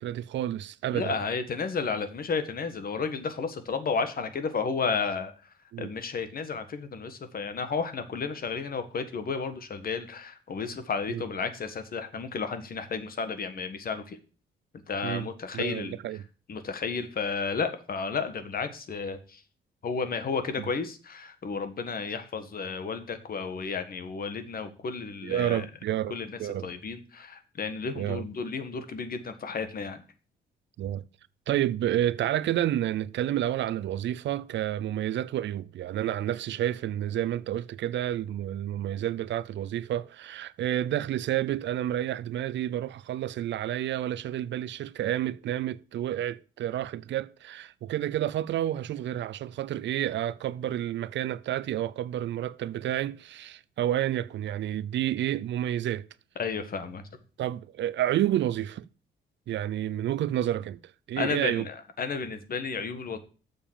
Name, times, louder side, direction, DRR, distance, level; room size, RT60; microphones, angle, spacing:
voice 1, 0.0-1.2 5.7-5.9 11.1-11.2 15.0-15.3 15.5-16.2 25.2-26.7 28.0-28.2 30.8-31.1 31.5-56.1 57.4-58.8 59.5-60.8 61.1-61.7, right 12 dB, 65° right, 0.5 m, -30 dB
voice 2, 0.9-5.3 5.8-14.2 14.9-16.0 16.5-19.4 19.8-25.6 26.1-30.0 56.4-57.0 61.2-63.2, left 5 dB, 45° left, 1.6 m, -32 dB
7.2 x 6.7 x 7.4 m
cardioid pair, 90°, 20 cm